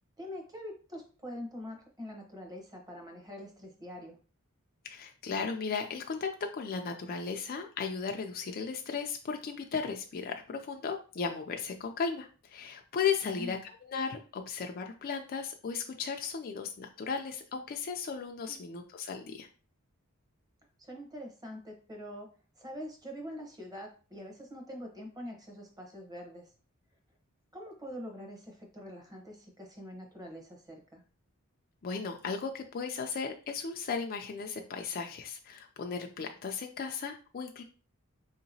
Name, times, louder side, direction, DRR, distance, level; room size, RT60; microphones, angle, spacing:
voice 1, 0.2-4.2 13.2-13.6 18.5-18.6 20.8-22.3 22.6-26.5 27.5-31.0, equal, 20° right, 2 dB, 0.9 m, -44 dB
voice 2, 4.8-19.5 31.8-37.6, left 5 dB, 45° left, 4 dB, 0.4 m, -36 dB
4.3 x 2.9 x 2.7 m, 0.37 s
head